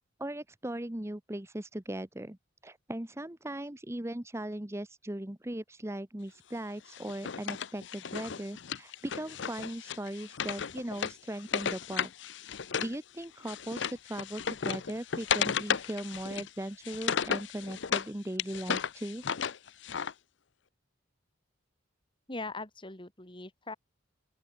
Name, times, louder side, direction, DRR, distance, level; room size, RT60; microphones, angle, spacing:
voice 1, 0.2-2.4 2.6-12.1 12.8-19.2, right 1 dB, 15° right, 0.9 m, -38 dB
Wood, 6.9-13.0 13.2-18.1 18.4-20.1, left 7 dB, 60° left, 0.6 m, -34 dB
voice 2, 22.3-23.7, left 2 dB, 25° left, 2.5 m, -41 dB
open air
head